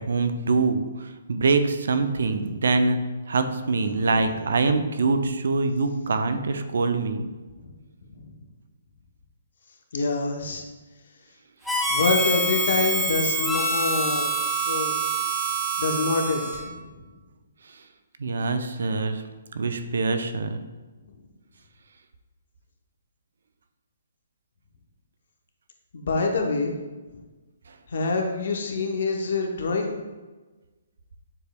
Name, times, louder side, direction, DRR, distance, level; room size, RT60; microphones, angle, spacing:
voice 1, 0.0-3.0 3.3-7.3 17.7-17.8 18.2-19.2 19.5-20.6, right 3 dB, 70° right, 8 dB, 0.4 m, -24 dB
voice 2, 3.9-4.2 7.5-7.7 8.2-8.3 9.9-10.6 11.9-14.3 14.7-14.9 15.8-17.1 25.9-26.7 27.1-27.2 27.9-30.0, left 3 dB, 65° left, 3 dB, 0.7 m, -26 dB
Harmonica, 11.7-16.7, right 2 dB, ahead, 0.5 m, -26 dB
6.8 x 3.3 x 2.2 m, 1.2 s
hypercardioid pair, 140°, 0 cm